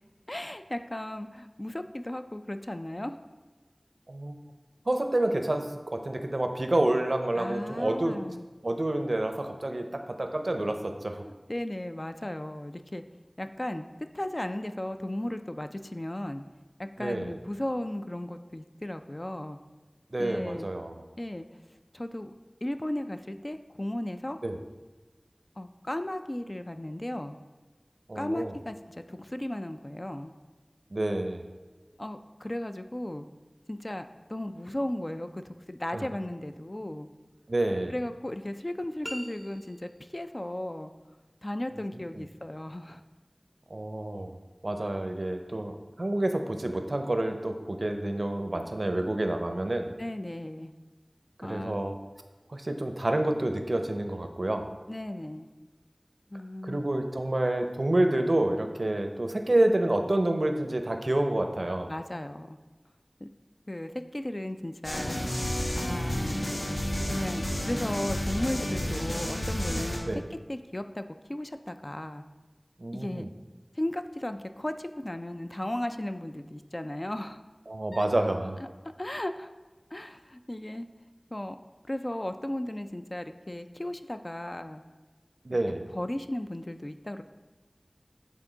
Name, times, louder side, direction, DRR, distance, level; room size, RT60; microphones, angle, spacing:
voice 1, 0.3-3.2 7.3-8.4 11.2-13.0 13.4-13.9 14.1-16.4 16.8-19.6 20.2-20.7 21.2-21.5 21.9-22.3 22.6-24.4 25.6-27.4 28.2-30.3 32.0-33.3 33.7-37.1 37.9-40.9 41.4-43.0 50.0-50.7 51.4-51.9 54.9-55.5 56.3-56.8 61.9-62.6 63.2-63.3 63.7-65.2 65.8-66.5 67.1-72.2 72.9-73.3 73.8-77.4 77.9-78.1 79.0-79.5 79.9-80.9 81.3-81.6 81.9-84.8 85.5-85.6 85.9-87.2, left 1 dB, 40° left, 8 dB, 0.3 m, -35 dB
voice 2, 4.1-4.4 4.9-8.1 8.6-11.2 17.0-17.3 20.1-20.9 24.4-24.6 28.1-28.5 30.9-31.5 35.9-36.1 37.5-37.9 41.7-42.3 43.7-44.3 44.6-49.9 51.4-52.0 52.5-54.7 56.6-61.9 70.1-70.2 72.8-73.3 77.7-78.6 85.4-85.9, right 1 dB, 70° right, 6 dB, 0.5 m, -28 dB
sound 1, 39.0-40.1, equal, 15° right, 0.5 m, -42 dB
sound 2, 64.8-70.0, equal, 70° left, 1.3 m, -31 dB
8.2 x 3.6 x 3.9 m, 1.3 s
wide cardioid pair, 40°, 0 cm